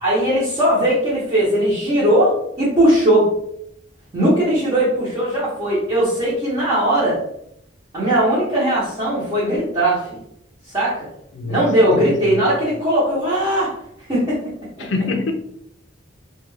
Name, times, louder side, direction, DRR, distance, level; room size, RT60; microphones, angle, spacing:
voice 1, 0.0-3.3 4.1-7.2 7.9-10.2 10.7-11.1 11.5-13.7 14.1-14.4 14.8-14.9, right 1 dB, 25° right, -10 dB, 0.9 m, -18 dB
voice 2, 11.3-11.7 11.9-12.4 14.8-15.3, left 3 dB, 65° left, 5 dB, 0.4 m, -25 dB
2.4 x 2.3 x 3.1 m, 0.73 s
head